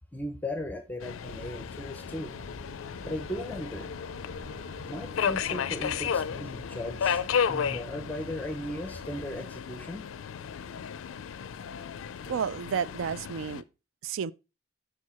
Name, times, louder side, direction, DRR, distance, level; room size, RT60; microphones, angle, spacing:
voice 1, 0.1-2.3 3.1-3.9 4.9-10.1, left 1 dB, 10° left, 0.5 m, -37 dB
Subway metro underground, 1.0-13.6, left 7 dB, 90° left, 0.4 m, -34 dB
sound 1, 1.2-9.4, equal, 35° right, 0.8 m, -48 dB
Wind instrument woodwind instrument, 1.9-9.3, right 1 dB, 55° right, 2.7 m, -59 dB
voice 2, 12.3-13.6 14.0-14.3, right 7 dB, 80° right, 0.3 m, -31 dB
6.3 x 4.7 x 4.2 m
head